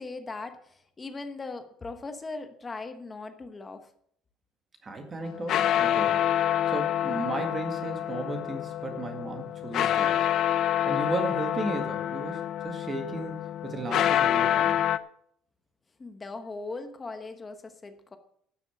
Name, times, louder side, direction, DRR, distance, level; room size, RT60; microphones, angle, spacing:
voice 1, 0.0-3.9 16.0-18.2, left 3 dB, 15° left, 7 dB, 1.0 m, -39 dB
voice 2, 4.8-6.3 6.7-10.3 10.9-13.4 13.6-14.8, right 2 dB, 20° right, 5 dB, 1.8 m, -35 dB
sound 1, 5.2-15.0, left 11 dB, 45° left, 0.5 m, -27 dB
12.5 x 6.9 x 7.2 m, 0.66 s
cardioid pair, 175°, 0 cm